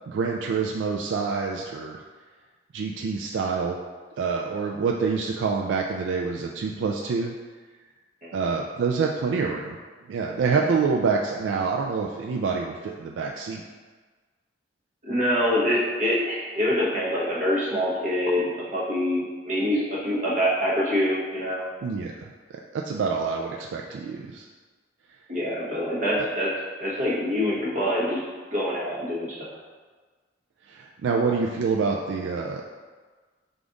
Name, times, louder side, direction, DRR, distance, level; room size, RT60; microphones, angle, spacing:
voice 1, 0.1-2.0 2.7-3.8 4.2-7.3 8.3-9.8 10.1-13.6 21.8-24.5 30.7-32.6, right 5 dB, 75° right, 0 dB, 0.3 m, -27 dB
voice 2, 15.0-21.7 25.3-26.5 26.8-28.2 28.5-29.6, equal, 45° right, -6 dB, 1.0 m, -25 dB
5.1 x 2.4 x 3.7 m, 1.4 s
head